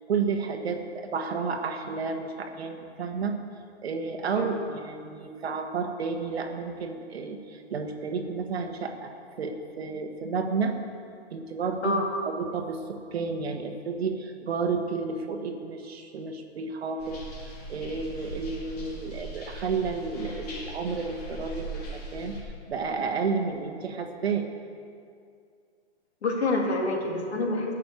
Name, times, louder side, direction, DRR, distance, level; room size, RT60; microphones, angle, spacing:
voice 1, 0.1-3.4 3.8-10.8 11.3-17.2 17.7-22.4 22.7-24.5, right 5 dB, 65° right, 5 dB, 1.3 m, -31 dB
sound 1, 17.0-22.4, right 1 dB, 35° left, 2.1 m, -39 dB
voice 2, 26.2-27.7, left 2 dB, 70° left, 1 dB, 2.2 m, -27 dB
11.5 x 6.1 x 8.3 m, 2.3 s
hypercardioid pair, 180°, 34 cm